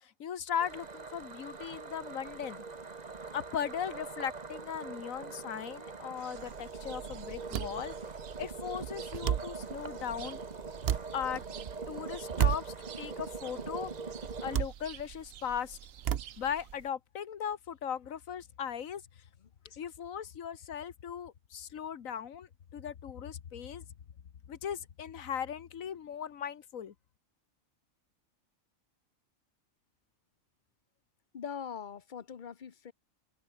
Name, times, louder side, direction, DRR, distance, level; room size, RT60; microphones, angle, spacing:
voice 1, 0.0-2.6 3.3-7.9 8.4-10.4 11.1-11.4 11.9-13.9 14.4-15.8 16.4-19.0 19.8-23.9 24.5-26.9, left 8 dB, 80° left, 1.6 m, -38 dB
sound 1, 0.6-14.6, right 4 dB, 30° right, 1.4 m, -43 dB
sound 2, 6.2-16.8, right 11 dB, 75° right, 1.2 m, -53 dB
sound 3, 6.4-16.9, right 9 dB, 55° right, 0.9 m, -36 dB
voice 2, 19.4-19.8 31.3-32.9, left 7 dB, 40° left, 1.0 m, -43 dB
omnidirectional pair, 1.4 m